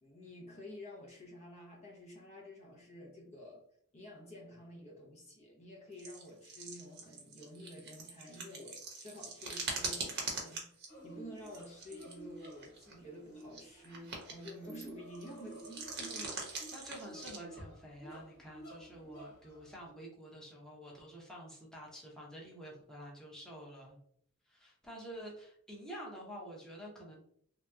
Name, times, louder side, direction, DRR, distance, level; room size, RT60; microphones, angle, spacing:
voice 1, 0.0-3.6 3.9-16.3, equal, 35° left, -2 dB, 0.7 m, -50 dB
sound 1, 6.0-10.9 11.4-12.1 12.4-12.9 13.4-14.9 15.1-17.4, right 4 dB, 55° right, 0.9 m, -42 dB
sound 2, 10.9-19.9, right 1 dB, 50° left, 1.2 m, -53 dB
voice 2, 16.1-24.0 24.5-27.2, equal, 5° left, -4 dB, 0.8 m, -49 dB
3.3 x 2.8 x 2.3 m, 0.65 s
head